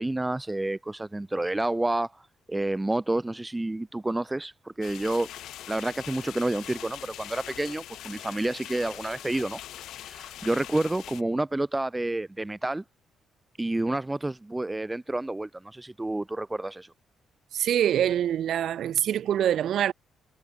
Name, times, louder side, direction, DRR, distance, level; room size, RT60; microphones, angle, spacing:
voice 1, 0.0-2.2 2.5-5.3 5.7-9.6 10.0-12.8 13.6-16.9, right 2 dB, 15° right, 1.2 m, -29 dB
sound 1, 4.8-11.2, left 12 dB, 80° left, 6.5 m, -42 dB
voice 2, 17.5-19.9, right 10 dB, 70° right, 2.9 m, -25 dB
cardioid pair, 90°, 0 cm